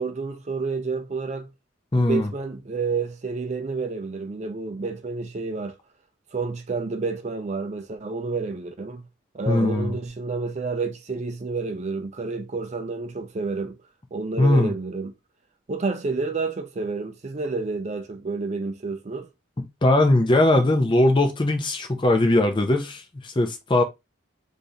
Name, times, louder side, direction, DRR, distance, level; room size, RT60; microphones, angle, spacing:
voice 1, 0.0-1.5 2.0-5.8 6.3-9.0 9.3-13.8 14.1-15.1 15.7-19.3, right 4 dB, 35° right, 0.4 m, -29 dB
voice 2, 1.9-2.3 9.5-9.9 14.4-14.7 19.8-23.8, left 1 dB, 25° left, 0.5 m, -20 dB
3.5 x 2.5 x 2.7 m
head